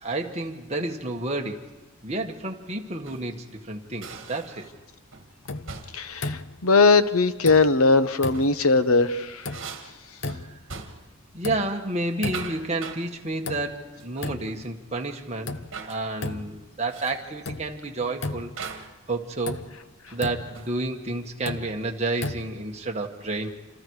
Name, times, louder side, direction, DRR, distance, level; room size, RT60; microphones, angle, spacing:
voice 1, 0.0-1.7 2.0-4.7 10.5-10.6 11.3-15.5 15.8-18.5 19.1-19.6 20.1-23.5, right 2 dB, 30° right, 2 dB, 1.7 m, -30 dB
sound 1, 3.0-3.4 4.0-4.8 5.1-5.3 5.7-6.1 8.1-8.6 9.0-11.2 11.5-11.8 12.1-13.1 14.0-14.4 14.6-14.7 15.7-16.0 16.9-17.3 18.6-19.0 20.1-20.8, right 5 dB, 55° right, 2.1 m, -41 dB
sound 2, 5.5-5.8 6.2-6.7 7.4-7.9 8.2-8.7 9.4-9.9 10.2-10.7 11.4-11.9 12.2-12.8 13.4-13.9 14.2-14.7 15.5-15.8 16.2-16.7 17.4-17.8 18.2-18.7 19.5-19.8 20.2-20.6 21.4-21.8 22.2-22.7, left 2 dB, 55° left, 0.7 m, -35 dB
voice 2, 5.9-9.4, left 3 dB, 80° left, 11 dB, 1.0 m, -20 dB
27.5 x 27.5 x 4.9 m, 1.1 s
head